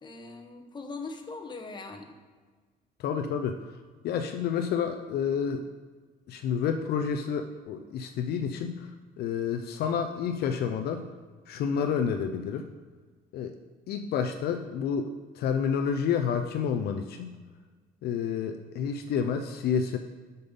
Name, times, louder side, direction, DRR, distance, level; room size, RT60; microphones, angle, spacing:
voice 1, 0.0-2.1 11.7-11.8, left 3 dB, 25° left, 4 dB, 1.1 m, -40 dB
voice 2, 3.0-3.6 4.0-5.6 6.3-8.9 9.2-11.0 11.5-12.7 13.3-13.5 13.9-17.4 18.0-20.0, left 7 dB, 70° left, 6 dB, 0.5 m, -29 dB
7.7 x 5.5 x 5.3 m, 1.4 s
cardioid pair, 110°, 17 cm